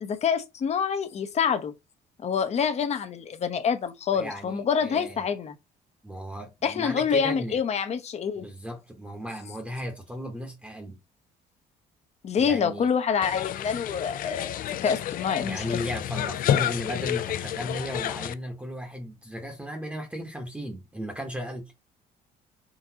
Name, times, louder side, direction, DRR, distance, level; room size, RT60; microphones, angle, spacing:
voice 1, 0.0-1.7 2.2-5.6 6.6-8.5 12.2-15.8, left 7 dB, 40° left, 0.8 m, -27 dB
voice 2, 4.1-5.3 6.0-7.6 8.4-11.0 12.4-12.9 15.4-21.7, equal, 5° right, 1.0 m, -36 dB
sound 1, 13.2-18.3, left 11 dB, 55° left, 0.4 m, -30 dB
4.0 x 3.7 x 2.8 m
cardioid pair, 110°, 17 cm